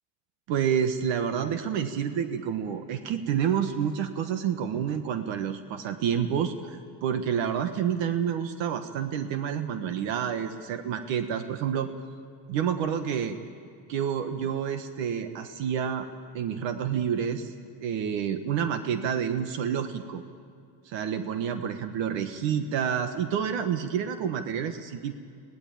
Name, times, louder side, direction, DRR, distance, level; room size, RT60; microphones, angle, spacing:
voice 1, 0.5-11.9 12.5-13.4 13.9-16.1 16.3-17.5 17.8-20.2 20.8-25.1, right 8 dB, 70° right, 8 dB, 1.4 m, -29 dB
24.5 x 18.5 x 8.7 m, 2.2 s
cardioid pair, 145°, 47 cm